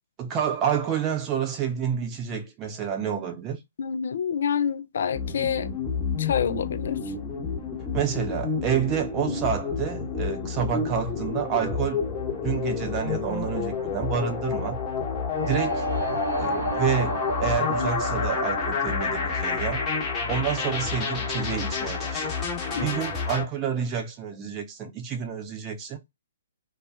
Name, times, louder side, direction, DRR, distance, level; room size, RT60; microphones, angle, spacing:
voice 1, 0.2-3.6 7.9-12.0 12.4-14.8 15.5-15.9 16.4-19.8 20.3-22.3 22.7-26.0, right 8 dB, 25° right, 0.7 m, -29 dB
voice 2, 3.8-5.7 6.2-7.0 9.3-9.4 17.8-17.9 22.7-22.9, left 7 dB, 65° left, 0.4 m, -27 dB
sound 1, 5.1-23.4, left 5 dB, 20° left, 1.0 m, -29 dB
sound 2, 15.3-21.2, right 2 dB, 75° right, 1.0 m, -33 dB
2.6 x 2.2 x 2.2 m
figure-of-eight pair, 125°, 0 cm